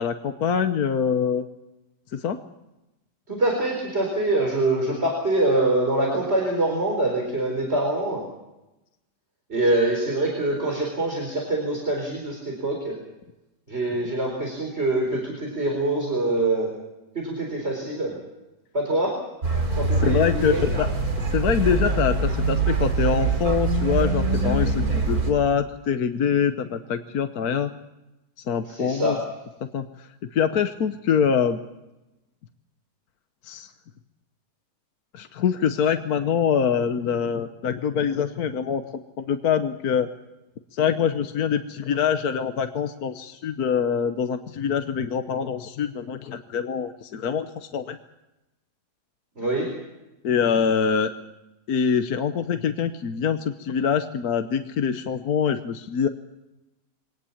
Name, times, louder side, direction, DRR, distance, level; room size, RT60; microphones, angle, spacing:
voice 1, 0.0-1.4 2.1-2.4 20.0-20.9 21.3-27.7 28.5-29.2 29.7-31.6 33.5-33.7 35.1-38.8 39.2-40.1 40.7-48.0 50.2-51.1 51.7-56.1, left 7 dB, 65° left, 8 dB, 1.5 m, -24 dB
voice 2, 3.3-8.3 9.5-13.0 13.7-16.7 17.1-18.1 18.7-19.2 19.8-20.7 28.7-29.2 49.4-49.7, right 2 dB, 35° right, 0 dB, 4.6 m, -24 dB
sound 1, 19.4-25.3, right 3 dB, 60° right, 3.6 m, -23 dB
23.5 x 19.0 x 7.2 m, 0.97 s
omnidirectional pair, 1.8 m